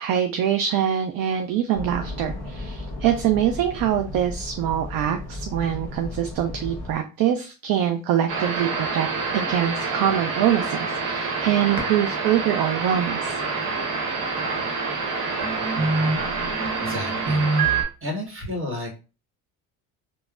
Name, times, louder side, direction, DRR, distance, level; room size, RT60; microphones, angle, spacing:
voice 1, 0.0-13.4, right 10 dB, 55° right, 6 dB, 0.5 m, -24 dB
sound 1, 1.7-6.9, left 1 dB, ahead, 1.5 m, -35 dB
sound 2, 8.3-17.8, right 4 dB, 85° right, 1.0 m, -26 dB
voice 2, 16.8-17.5 18.0-19.0, left 2 dB, 30° right, 1 dB, 1.3 m, -31 dB
3.2 x 2.1 x 2.4 m, 0.32 s
supercardioid pair, 80°, 44 cm